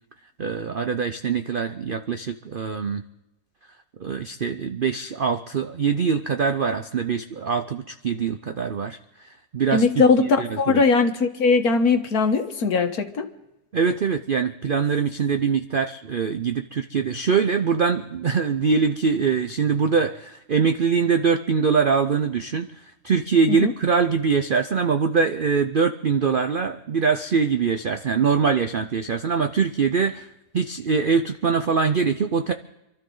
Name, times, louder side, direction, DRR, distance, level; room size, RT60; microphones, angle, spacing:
voice 1, 0.4-3.0 4.0-10.8 13.7-30.3 30.5-32.5, right 5 dB, 65° right, 7 dB, 0.5 m, -23 dB
voice 2, 9.7-13.3 23.5-23.7, left 4 dB, 65° left, 6 dB, 1.7 m, -20 dB
27.5 x 13.0 x 3.9 m, 0.96 s
omnidirectional pair, 1.8 m